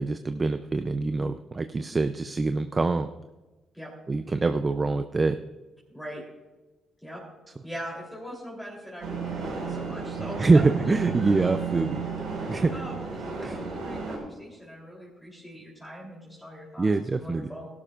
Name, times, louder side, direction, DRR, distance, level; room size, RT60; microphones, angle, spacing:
voice 1, 0.0-3.1 4.1-5.4 10.4-12.0 12.5-12.7 13.4-13.6 16.8-17.5, right 3 dB, 25° right, 9 dB, 0.5 m, -24 dB
voice 2, 5.9-6.2 7.0-7.2 7.6-10.6 11.1-11.4 11.7-11.8 12.7-16.9 17.2-17.7, equal, 5° left, -4 dB, 3.4 m, -41 dB
sound 1, 9.0-14.2, right 5 dB, 90° right, 4.8 m, -33 dB
18.0 x 12.0 x 2.5 m, 1.2 s
cardioid pair, 90°, 0 cm